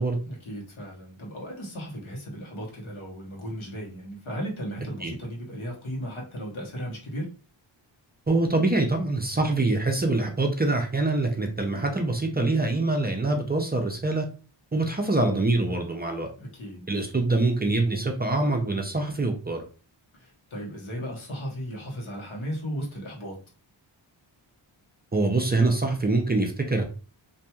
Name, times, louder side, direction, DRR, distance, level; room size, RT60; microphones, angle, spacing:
voice 1, 0.2-7.3 16.4-16.9 20.1-23.4, equal, 85° left, -2 dB, 1.2 m, -36 dB
voice 2, 8.3-14.3 14.7-16.3 16.9-19.6 25.1-26.8, right 2 dB, 20° right, 3 dB, 0.4 m, -24 dB
2.9 x 2.6 x 2.3 m, 0.36 s
wide cardioid pair, 120°, 47 cm